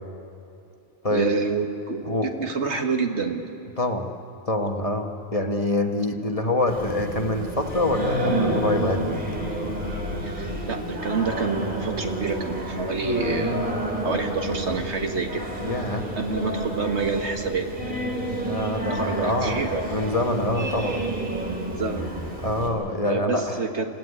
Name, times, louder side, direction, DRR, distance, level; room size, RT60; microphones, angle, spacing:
voice 1, 1.1-2.1 2.4-3.4 10.2-13.7 14.0-15.4 16.2-17.7 18.9-19.9 21.8-22.1 23.0-23.9, right 4 dB, 70° right, 5 dB, 1.8 m, -27 dB
voice 2, 2.0-2.5 3.8-4.1 4.5-9.0 15.6-16.1 18.5-19.6 19.9-21.0 22.4-23.6, left 1 dB, 30° left, 4 dB, 1.4 m, -25 dB
Singing, 6.7-22.7, right 1 dB, 45° right, 3.4 m, -29 dB
28.5 x 15.0 x 9.7 m, 2.7 s
omnidirectional pair, 1.2 m